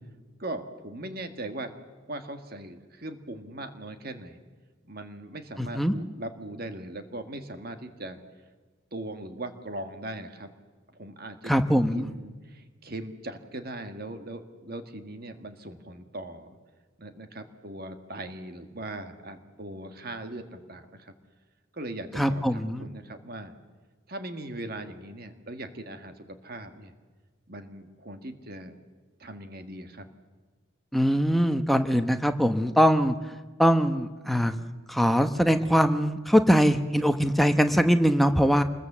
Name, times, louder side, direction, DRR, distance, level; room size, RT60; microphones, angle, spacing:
voice 1, 0.4-1.7 2.1-4.4 4.9-8.2 8.9-10.5 10.9-11.5 11.9-16.6 17.0-21.1 21.7-23.5 24.1-26.9 27.5-28.7 29.2-30.0, right 1 dB, 45° right, 7 dB, 1.7 m, -39 dB
voice 2, 5.6-5.9 11.5-12.1 22.1-22.9 30.9-33.2 33.6-34.5 34.9-38.6, equal, ahead, 7 dB, 1.0 m, -22 dB
26.5 x 21.5 x 7.4 m, 1.4 s
head